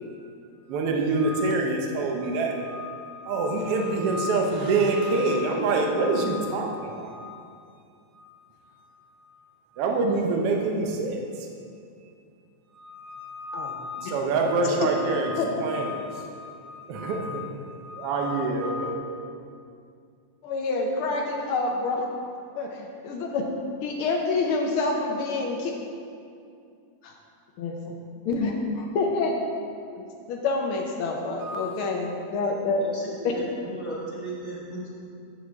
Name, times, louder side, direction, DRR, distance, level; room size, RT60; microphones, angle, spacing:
voice 1, 0.7-7.4 8.1-8.3 8.6-9.0 9.4-11.5 12.7-19.0 31.4-31.9, right 3 dB, 65° right, 1 dB, 1.6 m, -27 dB
voice 2, 20.4-22.0 22.5-23.5 23.8-25.7 27.0-27.1 27.6-27.9 28.2-29.3 29.9-32.8 33.2-33.3, left 3 dB, 85° left, 1 dB, 1.2 m, -27 dB
voice 3, 33.3-34.9, right 2 dB, 30° left, -7 dB, 0.8 m, -36 dB
9.2 x 8.5 x 3.5 m, 2.4 s
omnidirectional pair, 3.3 m